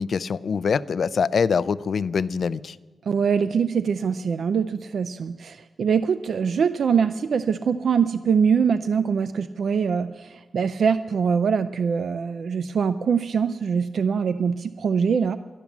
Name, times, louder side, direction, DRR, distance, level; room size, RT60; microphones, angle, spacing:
voice 1, 0.0-2.8, left 6 dB, 55° left, 18 dB, 0.3 m, -24 dB
voice 2, 3.1-15.4, right 6 dB, 65° right, 12 dB, 0.4 m, -23 dB
12.0 x 11.5 x 7.1 m, 1.3 s
wide cardioid pair, 160°, 0 cm